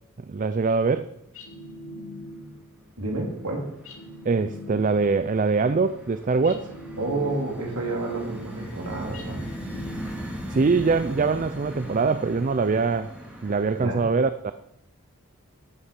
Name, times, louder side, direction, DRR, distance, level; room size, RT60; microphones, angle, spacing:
voice 1, 0.3-1.1 4.3-6.7 10.5-13.2 13.4-14.5, right 4 dB, 35° right, 0.4 m, -23 dB
sound 1, 1.3-2.7 3.8-5.2 6.4-7.8 9.1-10.5, left 1 dB, 65° left, 2.7 m, -41 dB
sound 2, 1.3-1.4 1.6-2.3 2.7-13.8, equal, 5° right, 2.8 m, -39 dB
voice 2, 3.0-3.7 7.0-9.4 13.8-14.0, right 2 dB, 90° right, 3.5 m, -29 dB
14.0 x 7.2 x 5.3 m
head